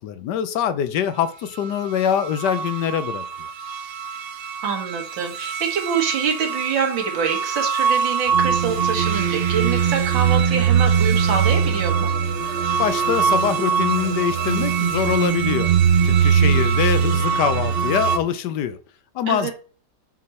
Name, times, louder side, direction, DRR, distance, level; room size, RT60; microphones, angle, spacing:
voice 1, 0.0-3.2 12.8-15.7 16.0-18.8 19.1-19.5, left 9 dB, 70° left, 1.2 m, -24 dB
sound 1, 2.0-18.2, right 7 dB, 70° right, 0.5 m, -21 dB
voice 2, 4.6-12.1 19.3-19.5, right 6 dB, 90° right, 2.4 m, -25 dB
6.4 x 6.2 x 4.2 m
omnidirectional pair, 2.0 m